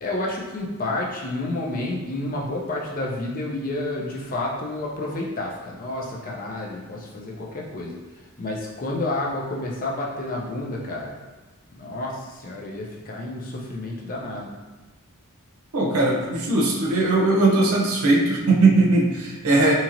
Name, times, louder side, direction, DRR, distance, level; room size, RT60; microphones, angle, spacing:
voice 1, 0.0-8.0 8.4-11.2 11.7-14.5, left 2 dB, 40° left, -2 dB, 0.4 m, -30 dB
voice 2, 15.7-19.7, right 2 dB, 80° right, -2 dB, 0.6 m, -19 dB
2.9 x 2.8 x 2.5 m, 1.2 s
head